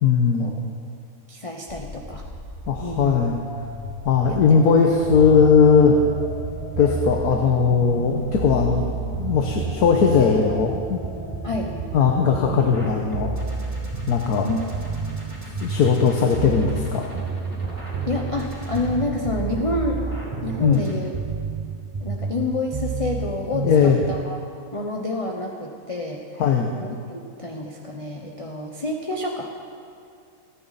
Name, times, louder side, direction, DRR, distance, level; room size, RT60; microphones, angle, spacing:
voice 1, 0.0-0.5 2.7-3.5 4.0-6.0 6.8-8.9 9.2-11.0 11.9-13.3 14.1-14.5 15.6-17.1 20.6-20.8 23.6-24.0 26.4-26.7, left 6 dB, 75° left, 1 dB, 1.5 m, -18 dB
voice 2, 1.3-2.2 2.8-3.2 4.5-4.6 11.4-11.7 14.4-14.6 18.1-20.1 20.4-21.1 22.0-24.4 24.7-26.4 26.8-29.7, left 2 dB, 25° left, 0 dB, 0.9 m, -28 dB
sound 1, 1.7-21.0, left 1 dB, 20° right, 3.6 m, -39 dB
sound 2, 4.3-24.2, right 5 dB, 50° right, 0.4 m, -31 dB
29.0 x 9.9 x 4.1 m, 2.4 s
omnidirectional pair, 1.7 m